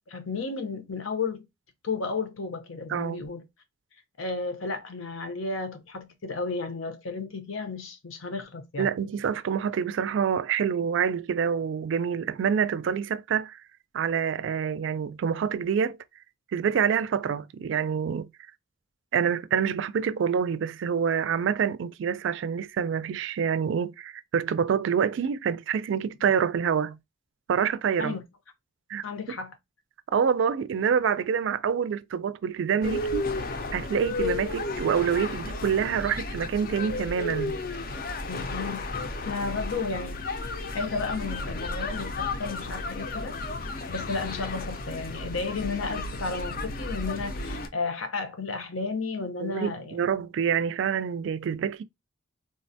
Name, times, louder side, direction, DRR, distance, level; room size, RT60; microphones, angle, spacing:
voice 1, 0.1-1.4 1.8-3.5 4.2-8.9 28.0-28.2 29.0-29.5 38.2-40.2 40.7-43.4 43.9-50.1, left 4 dB, 90° left, 0.8 m, -33 dB
voice 2, 8.8-13.6 13.9-16.0 16.5-18.3 19.1-27.0 27.5-28.1 28.9-29.4 30.1-33.3 33.7-37.6 49.4-51.8, right 7 dB, 70° right, 0.3 m, -27 dB
sound 1, 32.8-47.7, left 2 dB, 45° left, 0.4 m, -33 dB
3.7 x 2.1 x 2.6 m
head